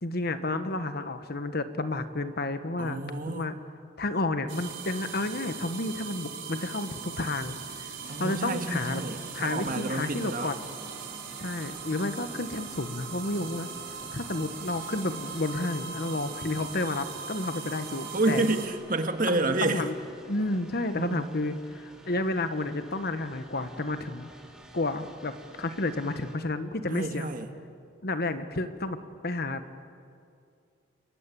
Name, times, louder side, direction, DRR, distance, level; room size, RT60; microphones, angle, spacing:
voice 1, 0.0-3.0 3.3-3.5 4.0-7.9 8.2-9.0 9.3-10.6 11.4-13.7 14.1-18.5 19.3-19.9 20.3-24.3 24.7-25.3 25.6-27.3 28.0-29.7, left 2 dB, 50° left, 10 dB, 1.3 m, -31 dB
voice 2, 2.8-3.5 8.1-10.5 18.1-19.9 20.9-21.2 26.9-27.5, right 2 dB, 45° right, 6 dB, 1.7 m, -29 dB
sound 1, 4.5-18.7, right 6 dB, 70° right, 4.5 m, -40 dB
sound 2, 8.0-26.4, right 1 dB, 5° right, 2.7 m, -51 dB
29.0 x 22.0 x 8.6 m, 2.4 s
head